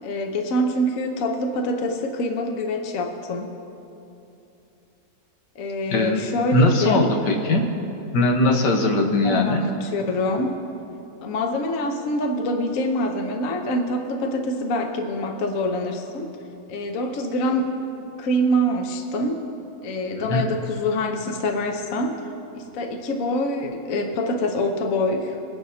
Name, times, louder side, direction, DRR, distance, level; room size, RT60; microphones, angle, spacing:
voice 1, 0.0-3.5 5.5-7.1 9.2-10.6 11.2-16.3 16.7-17.7 18.2-19.4 19.8-22.2 22.5-25.4, left 1 dB, 55° left, 3 dB, 1.3 m, -25 dB
voice 2, 5.9-6.2 6.5-7.7 8.1-9.6 20.2-20.4, left 2 dB, 75° left, 2 dB, 1.8 m, -20 dB
24.0 x 10.5 x 2.8 m, 2.8 s
omnidirectional pair, 1.9 m